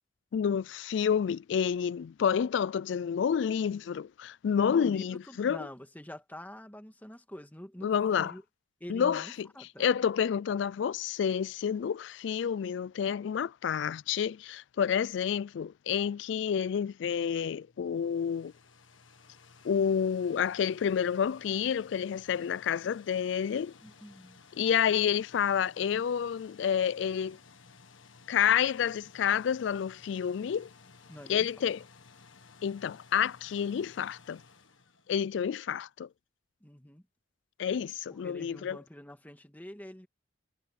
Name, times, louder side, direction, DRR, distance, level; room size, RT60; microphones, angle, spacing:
voice 1, 0.3-5.6 7.8-8.3 8.9-9.5 9.8-18.5 19.6-23.7 24.6-27.4 28.3-30.7 31.3-31.8 32.6-34.4 35.1-36.1 37.6-38.8, left 8 dB, 65° left, 0.3 m, -29 dB
voice 2, 4.7-8.4 8.8-9.8 23.8-24.4 31.1-31.5 36.6-37.0 38.2-40.1, equal, 10° left, 1.7 m, -46 dB
sound 1, 17.6-35.7, left 5 dB, 85° left, 1.7 m, -57 dB
head